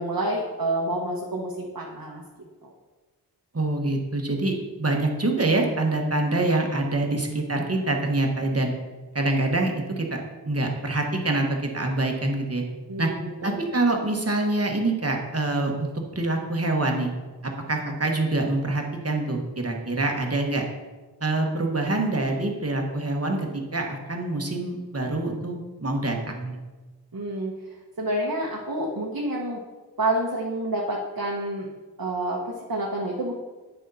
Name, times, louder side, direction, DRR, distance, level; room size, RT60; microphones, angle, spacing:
voice 1, 0.0-2.2 12.9-13.5 27.1-27.5 28.0-29.6 30.0-31.7 32.0-33.4, right 1 dB, 55° right, -2 dB, 1.2 m, -28 dB
voice 2, 3.5-8.7 9.1-12.6 13.0-13.1 13.4-17.1 17.4-20.6 21.2-26.6, right 2 dB, 35° right, 2 dB, 1.3 m, -25 dB
9.1 x 6.4 x 4.1 m, 1.3 s
wide cardioid pair, 70°, 40 cm